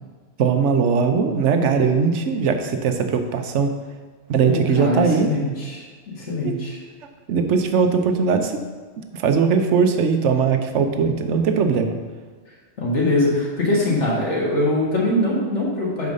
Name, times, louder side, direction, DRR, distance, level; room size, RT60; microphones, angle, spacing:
voice 1, 0.4-3.7 4.3-5.3 6.4-6.6 7.3-8.6 9.1-12.0, right 5 dB, 90° right, 6 dB, 1.0 m, -20 dB
voice 2, 4.4-6.8 12.8-16.1, left 1 dB, 80° left, -5 dB, 2.0 m, -22 dB
5.4 x 4.7 x 6.2 m, 1.5 s
omnidirectional pair, 1.2 m